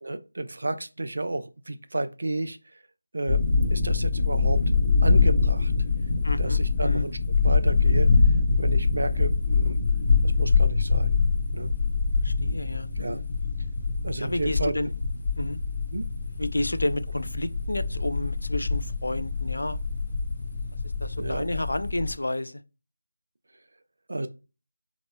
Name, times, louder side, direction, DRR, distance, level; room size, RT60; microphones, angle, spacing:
voice 1, 0.0-2.8 3.1-3.4 3.7-4.6 5.0-5.7 6.4-7.2 7.4-9.8 10.2-11.2 11.5-11.7 13.0-13.2 14.0-14.7 15.9-16.1 21.2-21.4 24.1-24.3, right 2 dB, 65° right, 0.5 m, -31 dB
sound 1, 3.3-22.1, left 4 dB, 35° left, 0.7 m, -24 dB
voice 2, 6.2-7.1 12.2-13.2 14.2-14.9 15.4-15.6 16.4-19.8 21.0-22.6, left 1 dB, 85° left, 0.4 m, -31 dB
3.9 x 2.9 x 2.2 m
figure-of-eight pair, 170°, 0 cm